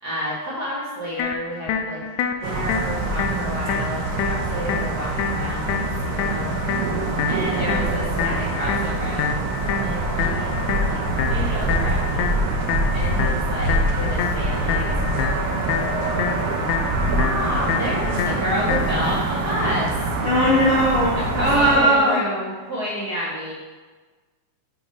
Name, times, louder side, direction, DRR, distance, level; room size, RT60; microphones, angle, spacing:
voice 1, 0.0-2.0 2.4-6.5 7.3-9.5 9.8-10.6 10.8-11.0 11.3-12.4 12.9-16.5 17.1-20.0 21.1-23.5, equal, 40° right, -10 dB, 1.7 m, -30 dB
sound 1, 1.2-19.2, left 7 dB, 80° left, 1.9 m, -28 dB
sound 2, 2.4-21.8, right 2 dB, 75° right, 1.2 m, -25 dB
voice 2, 20.2-22.2, equal, 60° left, -6 dB, 1.8 m, -18 dB
6.9 x 3.1 x 5.5 m, 1.4 s
omnidirectional pair, 3.3 m